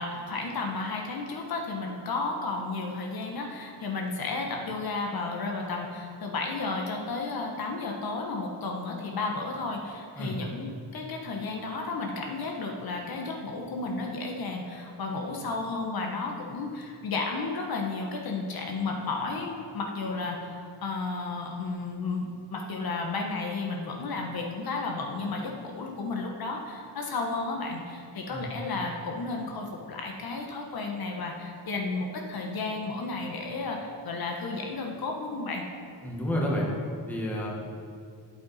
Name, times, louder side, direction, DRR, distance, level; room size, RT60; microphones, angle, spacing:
voice 1, 0.0-35.6, left 3 dB, 55° left, 1 dB, 1.2 m, -33 dB
voice 2, 36.0-36.7 37.1-37.5, equal, 5° left, -4 dB, 1.5 m, -29 dB
12.0 x 8.1 x 4.2 m, 2.3 s
wide cardioid pair, 175°, 43 cm